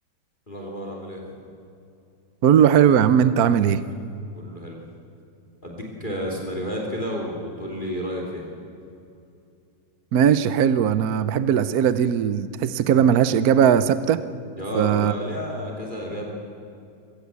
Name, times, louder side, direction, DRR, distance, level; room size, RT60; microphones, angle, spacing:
voice 1, 0.5-1.2 4.3-4.8 5.6-8.5 14.6-16.3, equal, 25° left, 0 dB, 3.1 m, -31 dB
voice 2, 2.4-3.8 10.1-14.2 14.7-15.1, right 8 dB, 60° right, 14 dB, 1.0 m, -18 dB
22.5 x 16.5 x 8.2 m, 2.6 s
omnidirectional pair, 2.2 m